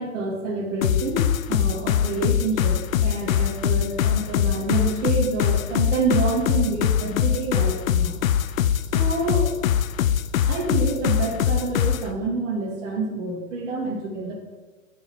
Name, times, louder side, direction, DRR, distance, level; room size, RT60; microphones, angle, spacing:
voice 1, 0.0-8.1 8.9-9.5 10.5-14.3, right 3 dB, 55° right, -1 dB, 2.3 m, -27 dB
sound 1, 0.8-12.1, left 9 dB, 75° left, 0.6 m, -22 dB
7.0 x 5.6 x 5.8 m, 1.3 s
hypercardioid pair, 150°, 41 cm